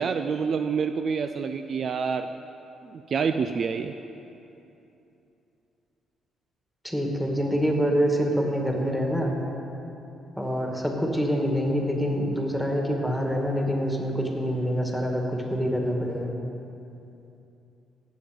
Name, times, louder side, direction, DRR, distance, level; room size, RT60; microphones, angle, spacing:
voice 1, 0.0-2.3 2.9-3.9, right 6 dB, 55° right, 8 dB, 0.4 m, -27 dB
voice 2, 6.8-9.3 10.4-16.3, equal, ahead, 0 dB, 2.1 m, -26 dB
17.0 x 7.2 x 5.3 m, 2.8 s
cardioid pair, 90°, 0 cm